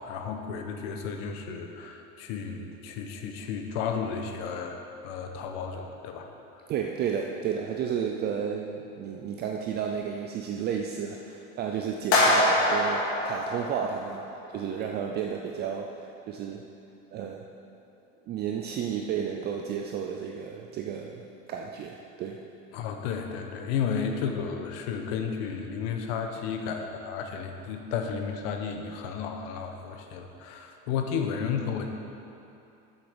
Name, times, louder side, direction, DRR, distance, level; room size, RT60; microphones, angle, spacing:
voice 1, 0.0-6.3 6.5-6.7 22.7-31.9, left 6 dB, 70° left, 4 dB, 1.1 m, -33 dB
voice 2, 6.7-14.2 14.5-16.7 17.1-17.5 18.3-21.2 21.5-22.4, right 7 dB, 30° right, 2 dB, 0.5 m, -32 dB
sound 1, 12.1-14.3, left 1 dB, 50° left, 2.5 m, -24 dB
8.2 x 7.2 x 6.2 m, 2.7 s
cardioid pair, 150°, 31 cm